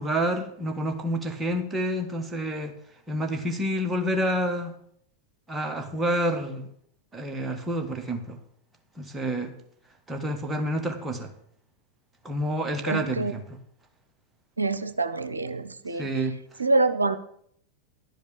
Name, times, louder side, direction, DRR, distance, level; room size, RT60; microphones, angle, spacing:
voice 1, 0.0-2.7 3.1-4.7 5.5-6.7 7.1-8.4 9.0-9.5 10.1-11.3 12.2-13.4 15.9-16.4, equal, 10° right, 3 dB, 1.5 m, -28 dB
voice 2, 12.8-13.3 14.6-16.1 16.6-17.2, right 3 dB, 80° right, 10 dB, 0.6 m, -26 dB
12.0 x 5.2 x 8.4 m, 0.67 s
figure-of-eight pair, 90°, 0 cm